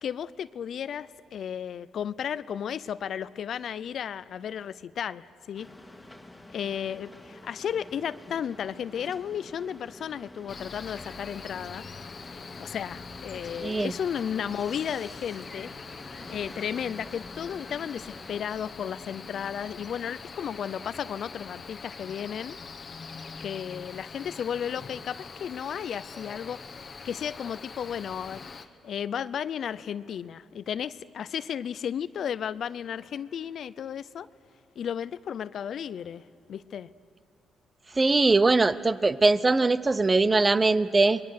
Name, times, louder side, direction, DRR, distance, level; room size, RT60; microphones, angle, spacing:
voice 1, 0.0-5.7 6.5-11.9 12.6-15.7 16.3-22.6 23.4-28.4 28.8-34.3 34.8-36.2 36.5-36.9, left 8 dB, 60° left, 16 dB, 0.5 m, -34 dB
sound 1, 5.5-18.4, left 1 dB, 5° left, 2.1 m, -48 dB
Cricket, 10.5-28.7, left 4 dB, 40° left, 1.1 m, -43 dB
voice 2, 13.6-13.9 38.0-41.2, right 3 dB, 25° right, 15 dB, 0.6 m, -21 dB
27.5 x 21.0 x 6.5 m, 2.8 s
cardioid pair, 90°, 0 cm